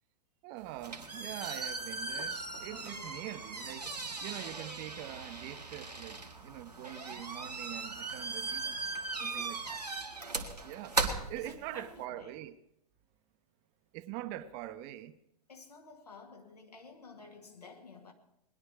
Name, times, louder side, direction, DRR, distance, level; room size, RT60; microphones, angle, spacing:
voice 1, 0.4-8.8 9.2-9.8 10.6-11.0 11.3-12.6 13.9-15.2, right 14 dB, 35° right, 0.8 m, -44 dB
sound 1, 0.6-12.0, right 3 dB, 85° right, 1.6 m, -38 dB
voice 2, 2.7-3.3 9.2-9.6 11.4-12.3 15.5-18.1, left 4 dB, 75° left, 2.2 m, -52 dB
20.0 x 11.0 x 4.8 m
figure-of-eight pair, 100°, 20 cm